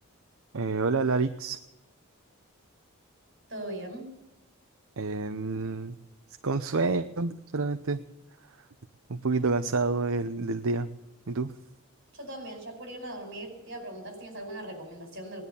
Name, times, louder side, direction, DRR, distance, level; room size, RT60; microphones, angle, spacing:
voice 1, 0.5-1.6 5.0-5.9 6.4-8.0 9.1-10.9 11.3-11.5, right 3 dB, 70° right, 8 dB, 0.7 m, -28 dB
voice 2, 3.5-4.1 12.1-15.4, right 1 dB, 50° right, 4 dB, 5.2 m, -40 dB
19.0 x 11.0 x 6.9 m, 0.93 s
head